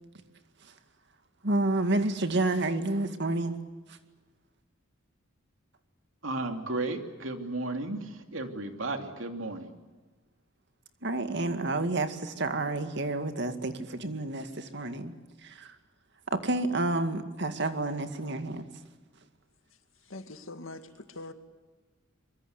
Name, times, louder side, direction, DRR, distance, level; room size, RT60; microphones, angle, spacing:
voice 1, 1.4-3.6 3.9-4.0 11.0-15.1 15.4-15.8 16.3-18.7, right 2 dB, 60° right, 2.2 m, -30 dB
voice 2, 6.2-9.7, right 2 dB, 80° right, 2.9 m, -34 dB
voice 3, 19.7-21.3, left 2 dB, 85° left, 2.1 m, -44 dB
25.0 x 23.0 x 8.2 m
head